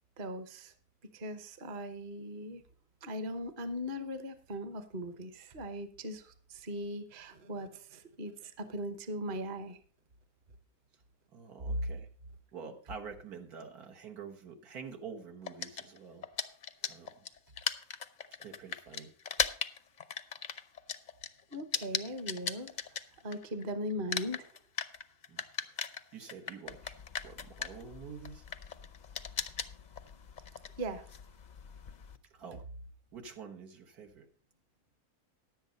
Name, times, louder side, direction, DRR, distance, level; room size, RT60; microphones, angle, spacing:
voice 1, 0.2-0.7 1.1-2.6 3.0-9.8 21.5-24.5 30.8-31.1, equal, 40° right, 10 dB, 1.0 m, -39 dB
voice 2, 11.3-12.1 12.5-16.3 16.9-17.2 18.4-19.1 25.3-26.9 27.2-28.5 32.3-32.7 33.1-34.3, right 6 dB, 80° right, 2 dB, 1.9 m, -47 dB
sound 1, 15.5-23.6 23.9-32.2, left 6 dB, 55° left, 0.5 m, -38 dB
10.5 x 8.0 x 5.2 m, 0.43 s
omnidirectional pair, 1.6 m